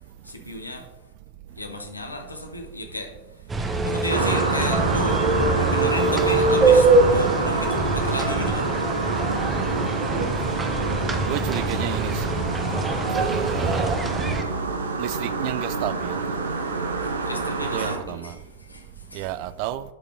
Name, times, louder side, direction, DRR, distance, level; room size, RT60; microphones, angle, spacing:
voice 1, 0.2-0.9 1.6-3.5 3.8-5.2 5.5-8.7 10.9-11.3 12.6-13.2 14.6-14.9 16.4-19.3, left 2 dB, 80° left, 1.2 m, -34 dB
sound 1, 3.5-14.4, right 3 dB, 15° right, 1.0 m, -23 dB
sound 2, 4.1-18.0, right 3 dB, 70° right, 0.9 m, -27 dB
sound 3, 4.3-9.8, left 5 dB, 40° left, 1.1 m, -42 dB
voice 2, 11.2-12.2 13.1-14.0 15.0-16.2 17.7-18.4 19.1-19.8, right 14 dB, 45° right, 0.3 m, -31 dB
11.0 x 4.9 x 3.7 m
figure-of-eight pair, 90°, 0 cm